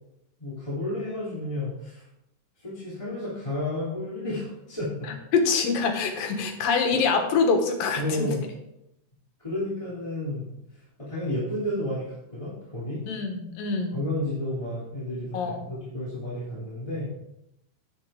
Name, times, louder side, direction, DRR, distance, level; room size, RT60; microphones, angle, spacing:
voice 1, 0.4-2.0 2.6-5.1 8.0-8.4 9.4-10.6 11.0-13.1 13.9-17.1, left 1 dB, 10° left, -9 dB, 2.7 m, -31 dB
voice 2, 5.3-8.3 13.1-14.0 15.3-15.6, left 5 dB, 85° left, 4 dB, 3.1 m, -25 dB
10.0 x 9.2 x 3.8 m, 0.83 s
omnidirectional pair, 3.9 m